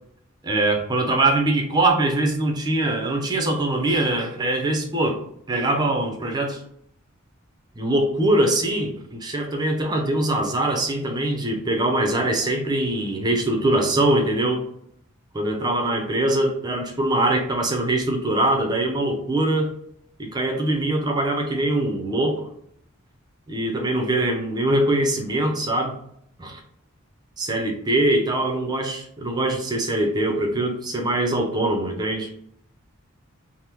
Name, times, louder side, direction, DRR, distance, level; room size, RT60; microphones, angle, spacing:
voice 1, 0.4-6.6 7.8-14.6 15.3-19.7 20.2-22.5 23.5-26.0 26.4-26.6 27.4-32.3, right 1 dB, 20° right, 2 dB, 0.5 m, -23 dB
3.4 x 2.0 x 2.9 m, 0.68 s
head